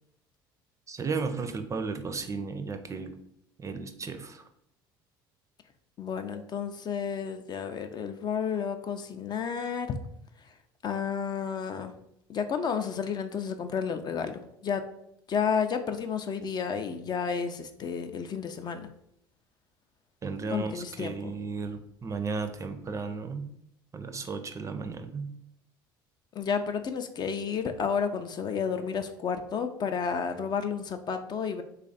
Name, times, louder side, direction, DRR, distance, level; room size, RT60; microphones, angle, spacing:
voice 1, 0.9-3.1 3.6-4.4 20.2-23.5 23.9-25.3, right 4 dB, 30° right, 7 dB, 0.5 m, -34 dB
voice 2, 6.0-10.0 10.8-11.9 12.3-14.8 15.3-18.9 20.5-21.3 26.3-31.6, left 6 dB, 40° left, 8 dB, 0.4 m, -31 dB
3.2 x 2.4 x 3.9 m, 0.74 s
hypercardioid pair, 65°, 11 cm